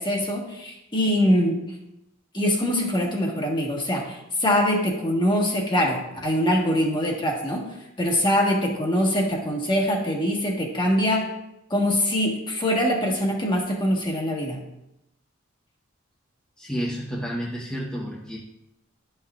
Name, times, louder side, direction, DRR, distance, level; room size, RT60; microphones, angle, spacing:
voice 1, 0.0-1.6 2.3-7.7 8.0-11.3 11.7-14.6, equal, 25° left, -1 dB, 1.3 m, -23 dB
voice 2, 16.6-18.4, equal, 5° left, -5 dB, 0.9 m, -30 dB
11.5 x 5.6 x 2.4 m, 0.87 s
head